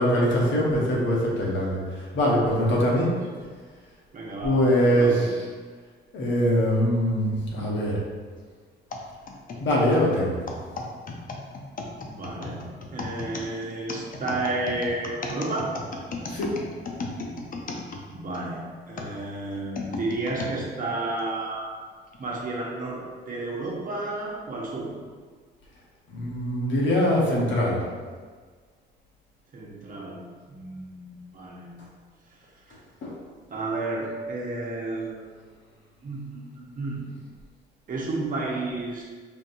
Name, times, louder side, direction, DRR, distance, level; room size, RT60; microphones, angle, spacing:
voice 1, 0.0-3.1 4.4-5.5 6.1-8.0 9.6-10.4 16.3-16.5 26.1-27.8 33.0-33.1, equal, 70° left, -4 dB, 1.1 m, -23 dB
voice 2, 4.1-4.6 4.8-5.3 12.0-12.6 12.9-15.7 18.1-21.7 22.2-24.9 29.5-30.2 30.5-31.7 33.5-35.3 36.0-37.0 37.9-39.0, right 2 dB, 45° right, -3 dB, 0.9 m, -32 dB
sound 1, 8.9-18.4 19.0-20.6 21.2-21.3 22.1-22.4, left 3 dB, 45° left, 0.6 m, -35 dB
5.1 x 2.7 x 2.6 m, 1.5 s
cardioid pair, 90°, 20 cm